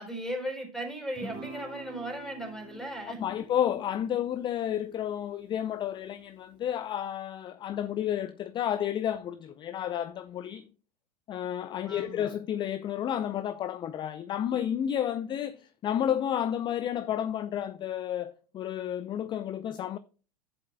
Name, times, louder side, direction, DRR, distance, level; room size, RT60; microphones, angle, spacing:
voice 1, 0.0-3.2 11.9-12.3, right 1 dB, ahead, 4.1 m, -37 dB
Guitar, 1.1-5.8, right 3 dB, 20° right, 2.1 m, -47 dB
voice 2, 3.2-10.7 11.3-20.0, left 10 dB, 20° left, 0.4 m, -31 dB
14.5 x 7.7 x 2.2 m
hypercardioid pair, 95°, 21 cm